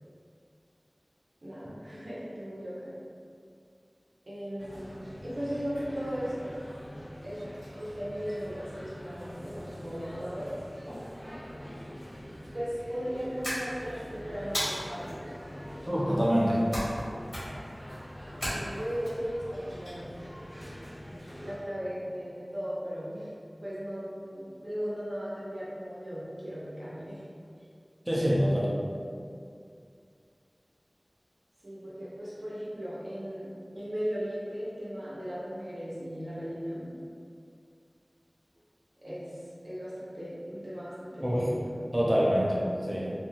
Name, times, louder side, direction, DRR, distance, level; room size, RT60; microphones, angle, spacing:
voice 1, 1.4-2.9 4.3-4.9 5.2-6.6 7.2-10.5 12.5-15.4 18.5-20.2 21.4-23.3 23.6-27.2 31.6-36.9 39.0-41.7 42.0-42.1, equal, 80° right, -9 dB, 0.7 m, -37 dB
sound 1, 4.6-21.6, equal, 20° left, 1.0 m, -44 dB
sound 2, 13.4-14.0 14.5-15.1 16.7-17.0 17.3-17.7 18.4-19.1, equal, 45° left, 1.3 m, -33 dB
voice 2, 15.9-16.6 28.1-28.7 41.2-41.4 41.9-42.6 42.9-43.1, equal, 15° right, -6 dB, 0.6 m, -25 dB
2.6 x 2.2 x 3.1 m, 2.3 s
wide cardioid pair, 50°, 0 cm